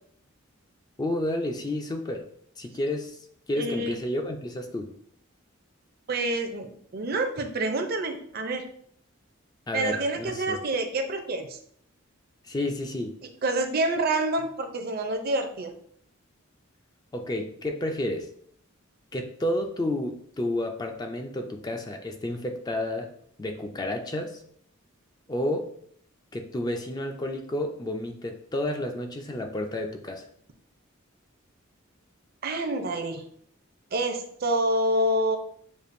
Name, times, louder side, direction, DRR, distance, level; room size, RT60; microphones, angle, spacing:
voice 1, 1.0-2.2 2.6-3.2 3.5-4.9 9.7-10.6 12.4-13.2 17.1-18.3 19.1-23.1 23.4-24.4 25.3-25.7 26.3-30.3, left 1 dB, 20° left, 4 dB, 0.4 m, -31 dB
voice 2, 3.6-4.0 6.1-8.6 9.7-11.6 13.4-15.7 32.4-33.2 33.9-35.4, right 1 dB, 50° right, 6 dB, 0.5 m, -27 dB
6.6 x 2.5 x 2.6 m, 0.63 s
head